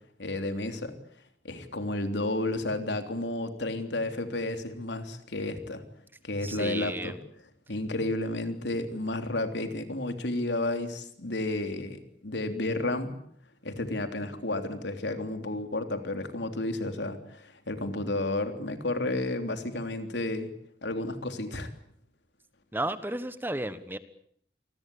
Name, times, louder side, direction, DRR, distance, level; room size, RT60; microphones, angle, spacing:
voice 1, 0.2-0.9 1.4-5.8 6.2-7.2 7.7-13.2 13.6-20.5 20.8-21.7, left 2 dB, 85° left, 7 dB, 3.5 m, -32 dB
voice 2, 6.4-7.1 22.7-24.0, right 1 dB, 10° right, 13 dB, 1.3 m, -33 dB
27.5 x 20.5 x 8.6 m, 0.66 s
head